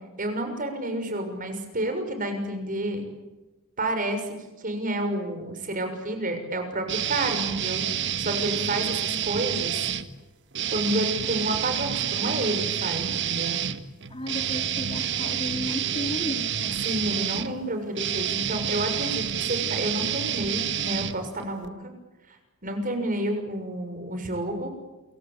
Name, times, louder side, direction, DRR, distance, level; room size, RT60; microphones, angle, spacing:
voice 1, 0.2-3.0 3.8-7.8 8.2-9.9 10.7-13.6 16.8-21.9 22.3-22.4 22.6-24.7, right 1 dB, 40° right, 6 dB, 6.6 m, -30 dB
sound 1, 6.9-10.0 10.5-21.7, right 9 dB, 60° right, 1.6 m, -28 dB
voice 2, 14.1-16.9, left 1 dB, 25° left, 5 dB, 2.6 m, -34 dB
29.0 x 24.0 x 8.5 m, 1.1 s
head